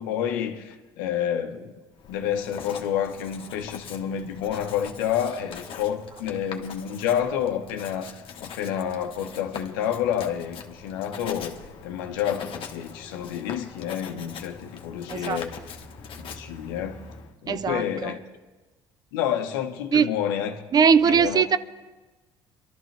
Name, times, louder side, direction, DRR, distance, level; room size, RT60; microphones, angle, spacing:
voice 1, 0.0-1.7 2.1-11.6 11.8-15.6 16.2-17.0 17.4-18.2 19.1-20.6 21.0-21.4, left 9 dB, 90° left, 1.2 m, -29 dB
Writing, 2.0-17.3, left 6 dB, 55° left, 1.5 m, -42 dB
voice 2, 15.1-15.4 17.5-18.1 19.9-20.1 20.7-21.6, right 6 dB, 35° right, 0.6 m, -20 dB
23.0 x 12.5 x 3.4 m
supercardioid pair, 80°, 11 cm